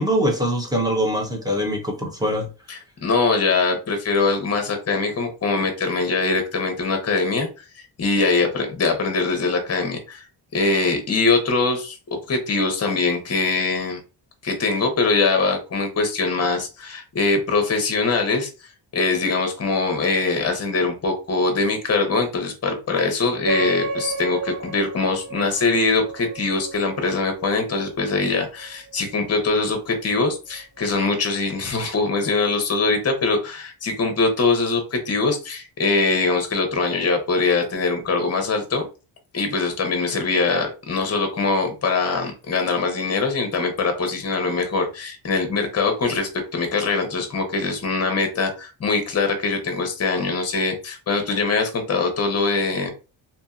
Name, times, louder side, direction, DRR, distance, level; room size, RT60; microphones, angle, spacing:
voice 1, 0.0-2.5, equal, 10° right, 0.4 m, -23 dB
voice 2, 2.7-7.5 7.8-10.3 10.5-11.9 12.3-14.0 14.4-18.5 18.9-38.9 39.3-52.9, left 3 dB, 30° left, 0.8 m, -22 dB
sound 1, 23.5-28.4, right 3 dB, 55° right, 1.1 m, -31 dB
2.8 x 2.6 x 2.4 m
cardioid pair, 145°, 47 cm